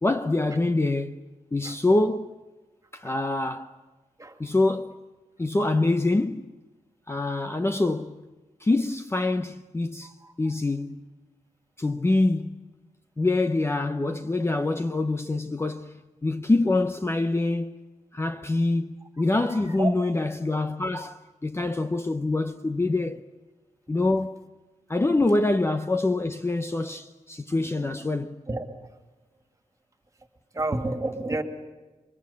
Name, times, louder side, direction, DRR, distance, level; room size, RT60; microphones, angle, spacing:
voice 1, 0.0-1.2 1.5-2.4 2.9-3.7 4.4-5.0 5.4-6.5 7.1-8.2 8.6-11.0 11.8-12.6 13.2-17.8 18.1-23.2 23.9-24.4 24.9-28.4, left 2 dB, 20° left, 0.8 m, -25 dB
voice 2, 19.5-19.9 28.5-28.7 30.5-31.4, right 2 dB, 25° right, 2.6 m, -29 dB
27.5 x 23.5 x 8.4 m
wide cardioid pair, 165°, 13 cm